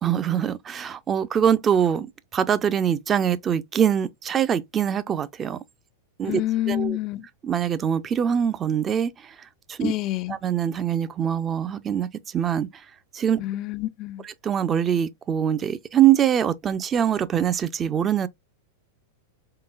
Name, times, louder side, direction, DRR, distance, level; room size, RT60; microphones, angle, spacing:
voice 1, 0.0-2.1 2.3-5.6 6.2-6.4 6.7-7.0 7.4-9.9 10.3-12.9 13.1-13.4 14.2-18.3, right 9 dB, 25° right, 0.4 m, -23 dB
voice 2, 6.3-7.3 9.8-10.4 13.4-14.2, left 14 dB, 40° left, 0.3 m, -28 dB
3.8 x 3.7 x 2.4 m
hypercardioid pair, 120°, 0 cm